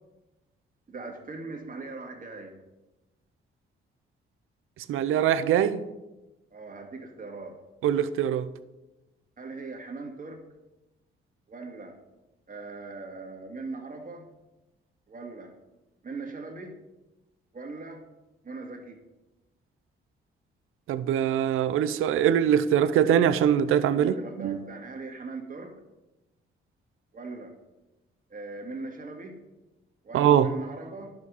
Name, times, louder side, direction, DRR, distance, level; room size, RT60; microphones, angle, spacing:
voice 1, 0.9-2.6 6.5-7.6 9.4-10.4 11.5-12.0 12.5-14.3 15.1-15.5 16.0-16.8 17.5-18.0 18.4-19.0 23.9-25.7 27.1-27.5 28.3-29.4 30.0-31.1, right 3 dB, 40° right, 2.1 m, -40 dB
voice 2, 4.9-5.8 7.8-8.5 20.9-24.6 30.1-30.5, right 9 dB, 90° right, 0.6 m, -23 dB
11.0 x 6.5 x 5.4 m
cardioid pair, 80°, 21 cm